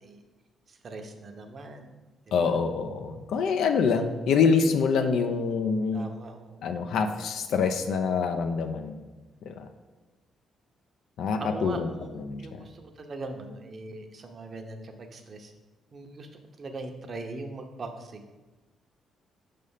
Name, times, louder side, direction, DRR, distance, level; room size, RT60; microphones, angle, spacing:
voice 1, 0.8-1.9 2.4-2.5 5.9-6.7 11.4-12.1 12.4-15.5 15.9-16.3 16.6-18.3, right 2 dB, 45° right, 5 dB, 0.8 m, -40 dB
voice 2, 2.3-6.1 6.6-9.0 9.5-9.7 11.2-11.9 12.1-12.7, left 5 dB, 75° left, 6 dB, 0.4 m, -26 dB
5.4 x 3.3 x 5.5 m, 1.2 s
supercardioid pair, 70°, 0 cm